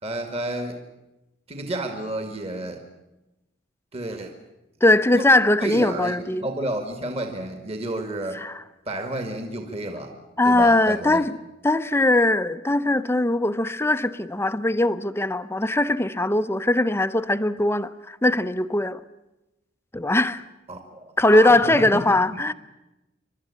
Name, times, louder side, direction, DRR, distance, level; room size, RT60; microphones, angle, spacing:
voice 1, 0.0-0.8 1.5-2.8 3.9-4.3 5.1-5.2 5.6-6.2 6.4-8.4 8.9-10.1 10.4-11.2 20.7-22.0 22.3-22.5, right 1 dB, 35° right, 2.2 m, -31 dB
voice 2, 4.8-6.5 8.3-8.6 10.4-11.4 11.6-19.0 19.9-20.4 21.2-22.5, left 1 dB, 15° left, 0.7 m, -20 dB
28.5 x 12.5 x 9.9 m
head